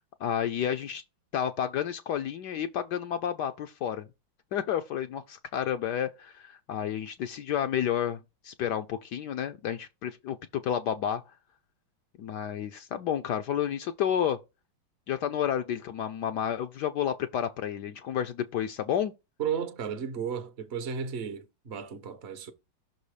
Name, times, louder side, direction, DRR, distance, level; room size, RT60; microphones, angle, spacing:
voice 1, 0.2-1.0 1.3-4.1 4.5-11.2 12.2-14.4 15.1-19.1, left 9 dB, 70° left, 1.1 m, -31 dB
voice 2, 19.4-22.5, right 7 dB, 50° right, 0.8 m, -34 dB
6.1 x 4.1 x 4.8 m
omnidirectional pair, 2.1 m